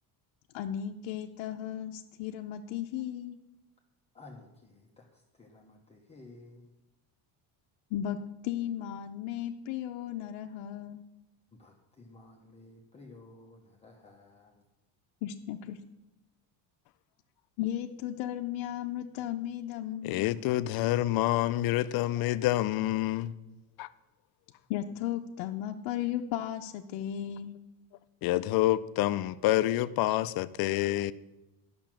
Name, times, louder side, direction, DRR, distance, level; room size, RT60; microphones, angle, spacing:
voice 1, 0.5-3.4 7.9-11.0 15.2-15.8 17.6-20.3 24.7-27.6, left 11 dB, 90° left, 3 dB, 0.7 m, -35 dB
voice 2, 4.1-6.7 11.5-14.6, left 2 dB, 15° left, -1 dB, 0.8 m, -54 dB
voice 3, 20.0-23.3 23.8-23.9 28.2-31.1, left 15 dB, 55° left, 15 dB, 0.5 m, -27 dB
10.5 x 6.1 x 7.4 m, 1.0 s
cardioid pair, 165°, 46 cm